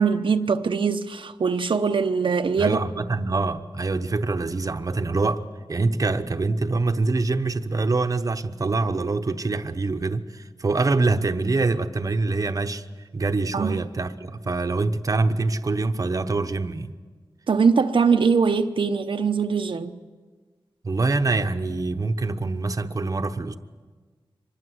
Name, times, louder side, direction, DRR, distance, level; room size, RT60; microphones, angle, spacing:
voice 1, 0.0-2.8 13.5-13.8 17.5-20.0, right 5 dB, 70° right, 0.8 m, -22 dB
voice 2, 2.6-5.4 5.7-12.8 13.1-16.9 20.8-23.6, right 3 dB, 40° right, 0.9 m, -25 dB
24.5 x 20.5 x 8.0 m
wide cardioid pair, 120°, 9 cm